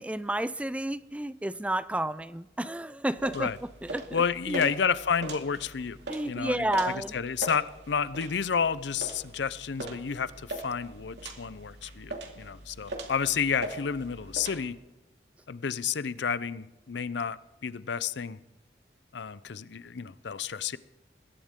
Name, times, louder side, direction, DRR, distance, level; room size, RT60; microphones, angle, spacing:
voice 1, 0.0-4.7 6.1-7.2, right 1 dB, 5° right, 15 dB, 0.4 m, -31 dB
sound 1, 3.2-14.6, right 2 dB, 70° right, 2.4 m, -41 dB
voice 2, 4.1-6.0 6.2-14.8 15.5-18.4 19.1-20.8, left 6 dB, 75° left, 17 dB, 0.5 m, -31 dB
21.0 x 17.0 x 3.7 m, 1.1 s
head